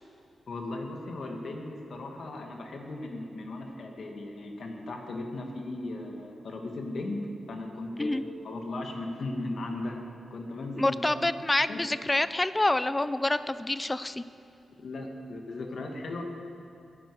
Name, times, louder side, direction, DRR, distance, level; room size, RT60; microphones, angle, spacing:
voice 1, 0.5-10.0 10.3-11.3 11.7-11.8 14.8-16.2, left 2 dB, 55° left, 2 dB, 1.7 m, -37 dB
voice 2, 10.8-14.2, left 2 dB, 15° left, 14 dB, 0.4 m, -27 dB
20.5 x 10.0 x 4.8 m, 2.6 s
wide cardioid pair, 175°, 0 cm